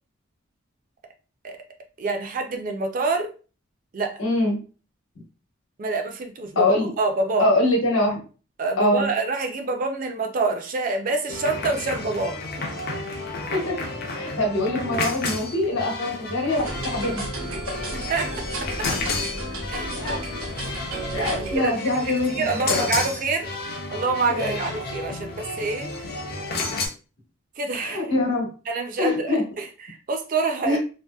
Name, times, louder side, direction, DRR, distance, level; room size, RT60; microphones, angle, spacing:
voice 1, 2.0-3.3 3.9-4.2 5.8-7.5 8.6-12.7 17.9-19.0 19.7-19.9 21.1-21.7 22.4-23.5 23.9-26.1 27.6-28.1 28.7-30.8, right 3 dB, 40° right, 4 dB, 0.3 m, -27 dB
voice 2, 4.2-4.6 6.5-6.9 7.4-8.2 8.8-9.1 13.5-13.8 14.1-17.3 19.9-20.2 21.1-22.9 24.3-24.6 27.8-28.5 29.0-29.4 30.6-30.8, left 1 dB, 80° left, -1 dB, 1.0 m, -23 dB
sound 1, 11.3-26.9, left 3 dB, 45° left, 0.4 m, -32 dB
sound 2, 16.6-21.6, right 1 dB, 90° right, 0.9 m, -32 dB
2.6 x 2.1 x 2.2 m, 0.35 s
head